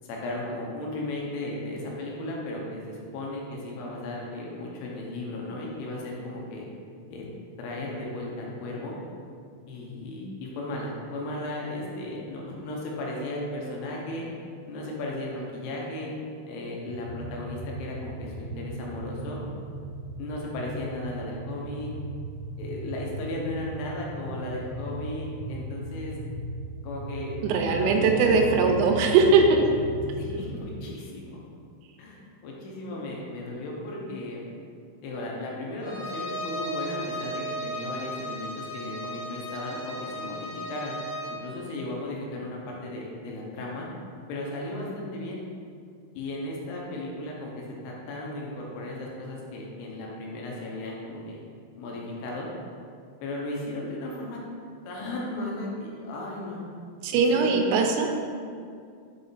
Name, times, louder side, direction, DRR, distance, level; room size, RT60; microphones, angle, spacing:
voice 1, 0.1-6.7 7.1-7.2 7.6-9.0 9.7-14.3 14.7-16.1 16.5-19.4 20.2-21.9 22.6-26.2 26.8-28.8 30.1-31.4 32.0-32.2 32.4-34.5 35.0-41.0 41.3-43.9 44.3-45.4 46.1-51.4 51.8-52.5 53.2-54.4 54.9-56.6 57.1-57.7, left 1 dB, 80° left, -2 dB, 3.1 m, -35 dB
sound 1, 16.9-30.6, right 2 dB, 65° right, 1.8 m, -37 dB
voice 2, 27.4-29.6 57.0-58.2, right 4 dB, 90° right, 3 dB, 3.3 m, -20 dB
Bowed string instrument, 35.8-41.4, equal, 60° left, 2.3 m, -35 dB
7.5 x 3.7 x 4.0 m, 2.3 s
omnidirectional pair, 5.7 m